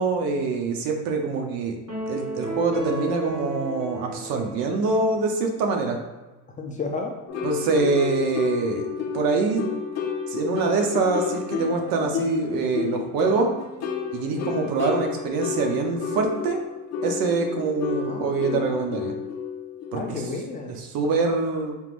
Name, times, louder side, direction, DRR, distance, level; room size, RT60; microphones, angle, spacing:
voice 1, 0.0-1.8 2.1-6.0 7.4-8.9 9.1-9.6 10.3-13.5 14.1-16.6 17.0-19.1 19.9-20.2 20.7-21.8, right 4 dB, 65° right, 3 dB, 0.8 m, -25 dB
sound 1, 1.9-5.4, equal, 45° right, 1.3 m, -33 dB
voice 2, 6.6-7.1 14.3-14.5 18.0-18.8 19.9-20.8, left 3 dB, 20° left, 1 dB, 0.4 m, -32 dB
sound 2, 7.3-20.2, left 6 dB, 40° left, 0.8 m, -31 dB
4.5 x 3.6 x 2.5 m, 1.1 s
cardioid pair, 130°, 38 cm